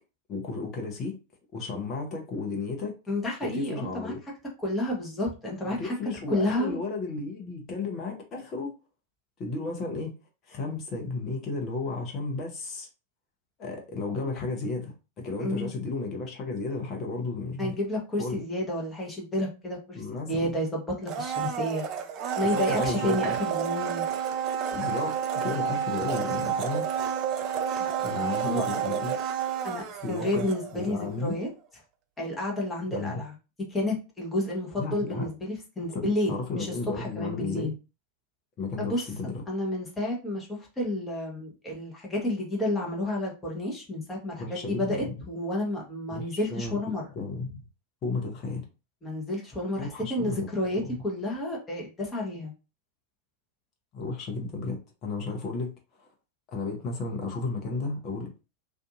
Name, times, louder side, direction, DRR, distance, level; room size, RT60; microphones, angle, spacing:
voice 1, 0.3-1.2 1.5-3.0 3.4-4.2 5.6-8.7 9.4-10.1 10.5-12.9 13.6-17.8 18.2-18.4 19.9-20.6 22.5-23.4 24.7-26.9 28.0-29.2 30.0-30.5 30.7-31.3 32.9-33.2 34.8-35.3 35.9-37.7 38.6-39.4 44.4-45.1 46.1-46.8 47.1-47.6 48.0-48.6 49.7-50.5 50.8-50.9 53.9-55.7 56.5-58.3, left 3 dB, 30° left, 0.9 m, -33 dB
voice 2, 3.1-4.1 4.6-5.9 6.3-6.8 15.4-15.7 17.6-20.0 20.3-21.8 22.4-24.0 27.8-29.1 29.6-31.5 32.2-33.3 33.7-37.7 38.8-39.0 39.5-47.1 49.0-52.5, left 1 dB, 10° left, 1.1 m, -30 dB
Domestic sounds home sounds, 21.0-31.0 31.3-31.4, right 8 dB, 40° right, 0.4 m, -30 dB
2.6 x 2.4 x 2.5 m
figure-of-eight pair, 90°, 0 cm